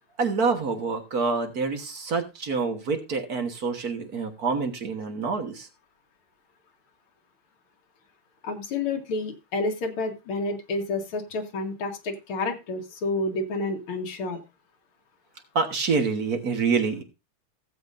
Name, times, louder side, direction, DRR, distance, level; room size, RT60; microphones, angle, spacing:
voice 1, 0.2-5.7 15.5-17.0, right 4 dB, 50° right, 5 dB, 1.7 m, -27 dB
voice 2, 8.4-14.4, left 3 dB, 80° left, 3 dB, 2.3 m, -29 dB
17.0 x 7.6 x 2.6 m, 0.26 s
omnidirectional pair, 2.3 m